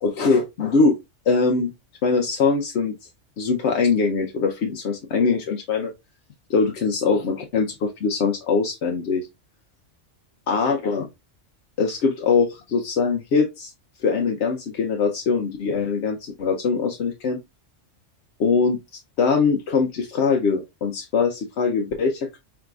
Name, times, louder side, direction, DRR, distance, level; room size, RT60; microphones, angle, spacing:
voice 1, 0.0-1.0 1.3-1.7 2.0-2.9 3.4-5.9 6.5-9.3 10.5-11.1 11.8-13.7 14.0-17.4 18.4-22.4, left 4 dB, 65° left, 0.9 m, -22 dB
4.7 x 3.6 x 2.3 m
omnidirectional pair, 1.3 m